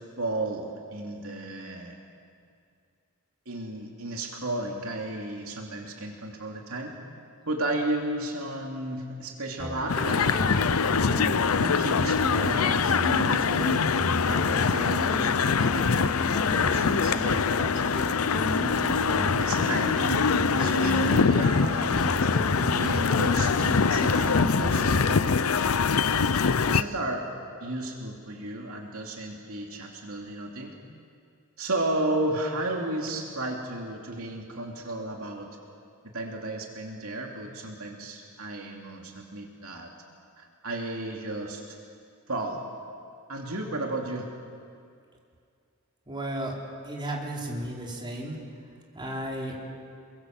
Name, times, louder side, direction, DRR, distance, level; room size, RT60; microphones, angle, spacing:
voice 1, 0.2-2.0 3.5-7.0 7.5-10.7 11.1-11.3 11.6-13.9 14.3-16.1 16.5-17.8 18.5-22.2 22.7-25.5 26.7-27.3 27.6-30.7 31.6-35.5 36.1-39.9 40.4-41.8 42.3-42.6 43.3-44.3, right 2 dB, 70° right, 1 dB, 2.9 m, -33 dB
sound 1, 9.6-25.6, equal, 5° left, 3.9 m, -34 dB
sound 2, 9.9-26.8, left 5 dB, 70° left, 0.6 m, -24 dB
voice 2, 46.1-46.5 46.8-48.4 48.9-49.5, right 1 dB, 20° right, -2 dB, 4.3 m, -33 dB
29.5 x 23.0 x 7.8 m, 2.3 s
head